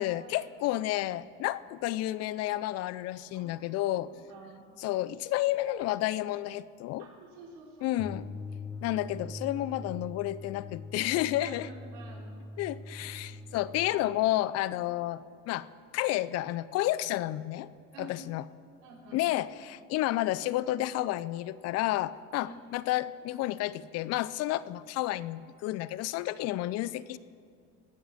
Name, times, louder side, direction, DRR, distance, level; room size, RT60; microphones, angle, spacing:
voice 1, 0.0-4.1 4.8-7.0 7.8-8.3 8.8-11.7 12.6-15.2 15.5-15.7 15.9-17.7 18.0-18.4 19.1-27.2, left 15 dB, 55° left, 18 dB, 0.5 m, -31 dB
voice 2, 3.3-4.0 4.3-4.7 7.0-8.0 8.5-8.6 9.5-9.6 11.4-12.3 13.3-13.7 14.7-14.8 17.9-18.2 18.8-19.2 22.4-22.6, right 2 dB, 70° right, -1 dB, 3.6 m, -49 dB
sound 1, 8.0-14.0, left 2 dB, 5° left, 0.5 m, -43 dB
16.5 x 9.3 x 6.5 m, 2.2 s
supercardioid pair, 105°, 30 cm